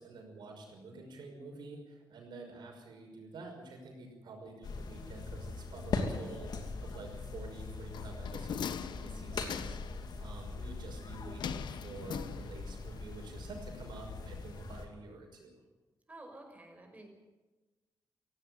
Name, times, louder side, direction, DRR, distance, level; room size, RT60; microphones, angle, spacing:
voice 1, 0.0-15.6, right 3 dB, 90° right, 3 dB, 5.9 m, -49 dB
sound 1, 4.6-14.9, left 3 dB, 70° left, 2.9 m, -41 dB
sound 2, 7.9-10.0 11.4-12.8 13.1-13.2, left 8 dB, 90° left, 0.9 m, -41 dB
voice 2, 16.1-17.1, right 2 dB, 20° right, 4 dB, 5.6 m, -51 dB
16.5 x 16.5 x 9.7 m, 1.2 s
wide cardioid pair, 115°, 7 cm